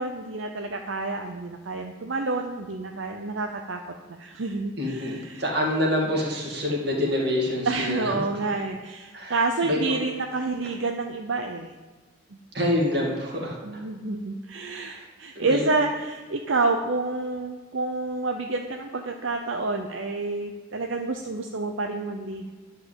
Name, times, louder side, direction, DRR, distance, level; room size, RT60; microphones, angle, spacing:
voice 1, 0.0-3.8 4.1-5.4 7.7-11.7 13.6-22.5, right 3 dB, 80° right, 4 dB, 0.7 m, -28 dB
voice 2, 4.8-8.2 9.1-9.4 9.6-9.8 12.5-13.6 14.7-15.1 15.3-15.6, left 1 dB, 55° right, -1 dB, 2.4 m, -26 dB
11.5 x 5.5 x 7.9 m, 1.3 s
head